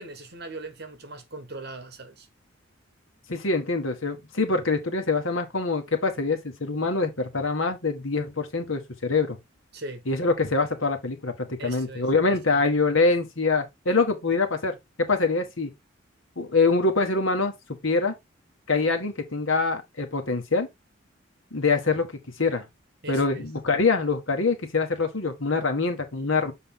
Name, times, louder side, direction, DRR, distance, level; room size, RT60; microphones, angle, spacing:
voice 1, 0.0-2.3 9.7-10.0 11.6-12.6 23.0-23.5, right 2 dB, 55° right, 1.5 m, -40 dB
voice 2, 3.3-9.4 10.1-15.7 16.4-17.5 17.8-18.1 18.7-20.7 21.5-22.1 22.4-22.6 23.1-26.5, left 3 dB, 80° left, 1.6 m, -24 dB
7.0 x 4.0 x 3.7 m
head